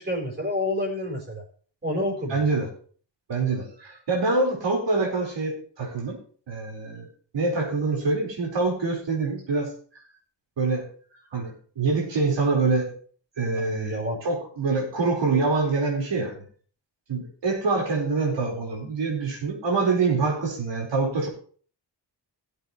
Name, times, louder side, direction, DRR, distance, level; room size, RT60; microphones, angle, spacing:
voice 1, 0.0-1.4 1.8-2.4 13.5-14.2, left 1 dB, 25° right, -2 dB, 4.4 m, -29 dB
voice 2, 2.3-2.7 3.3-6.2 6.5-7.1 7.3-9.7 10.6-10.8 11.3-12.9 13.4-16.3 17.1-21.3, right 3 dB, 90° right, 0 dB, 4.6 m, -25 dB
18.0 x 8.2 x 3.1 m, 0.43 s
wide cardioid pair, 155°, 42 cm